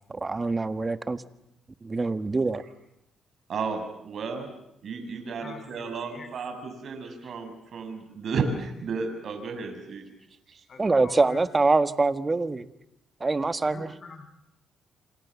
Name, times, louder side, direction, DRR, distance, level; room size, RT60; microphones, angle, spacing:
voice 1, 0.1-1.2 1.8-2.6 10.8-12.7 13.2-13.9, right 3 dB, 25° right, 11 dB, 1.5 m, -24 dB
voice 2, 3.5-4.5 4.8-10.0, right 4 dB, 55° right, 5 dB, 6.6 m, -33 dB
voice 3, 5.4-6.3 10.7-11.4 13.6-14.3, left 4 dB, 45° left, 7 dB, 6.7 m, -45 dB
28.0 x 27.0 x 7.2 m, 0.82 s
cardioid pair, 90°, 0 cm